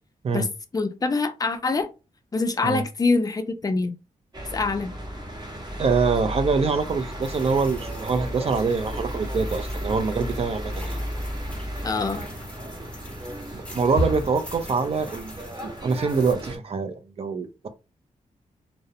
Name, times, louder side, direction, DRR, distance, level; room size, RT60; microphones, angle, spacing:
voice 1, 0.3-1.9 2.3-3.9 4.5-4.9 11.8-12.3, left 3 dB, 25° left, 0.4 m, -25 dB
sound 1, 4.3-16.6, equal, 30° right, 0.9 m, -33 dB
voice 2, 5.8-11.0 13.5-15.4 15.8-17.7, right 4 dB, 45° right, 0.5 m, -25 dB
sound 2, 6.8-16.3, left 1 dB, 10° left, 0.8 m, -47 dB
2.4 x 2.0 x 2.7 m
cardioid pair, 85°, 14 cm